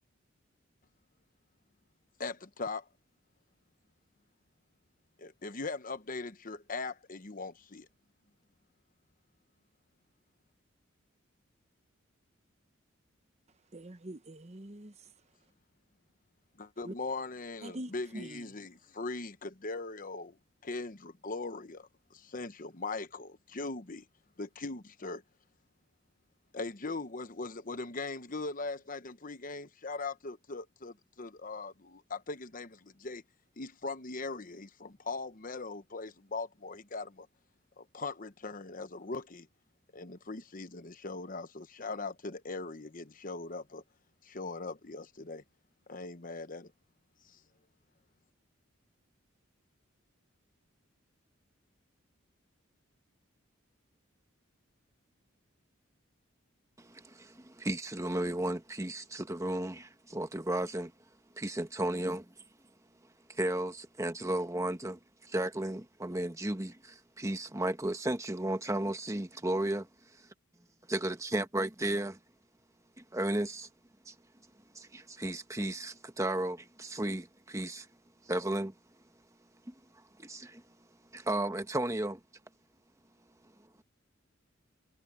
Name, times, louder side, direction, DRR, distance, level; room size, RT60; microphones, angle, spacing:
voice 1, 2.2-2.9 5.2-7.9 16.6-20.4 20.6-24.1 24.4-25.2 26.5-33.2 33.6-37.3 37.8-39.5 39.9-43.8 44.2-45.4 45.9-46.7 47.2-47.4, left 3 dB, 40° left, 1.0 m, -40 dB
voice 2, 13.7-14.9 16.8-16.9 17.6-18.5, right 1 dB, 30° right, 1.0 m, -44 dB
voice 3, 56.8-60.9 61.4-62.2 63.3-69.8 70.9-72.1 73.0-73.7 74.1-74.2 74.7-77.9 78.3-78.7 79.7-79.8 80.2-80.6 81.1-82.2, right 1 dB, 15° right, 1.2 m, -34 dB
head